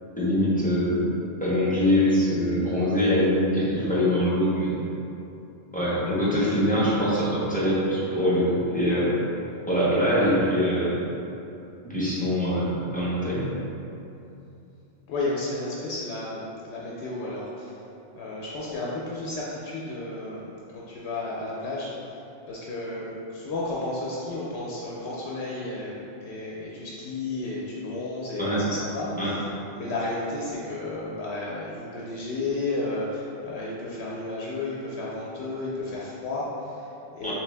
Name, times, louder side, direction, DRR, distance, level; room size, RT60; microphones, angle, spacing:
voice 1, 0.2-1.1 1.4-4.8 5.7-9.2 9.7-11.0 11.9-13.5 28.4-28.6 29.2-29.3 37.2-37.3, equal, 10° left, -10 dB, 0.6 m, -23 dB
voice 2, 15.1-17.8 18.1-29.4 29.7-37.3, left 2 dB, 70° left, -5 dB, 0.8 m, -33 dB
3.2 x 3.1 x 3.3 m, 2.8 s
omnidirectional pair, 1.2 m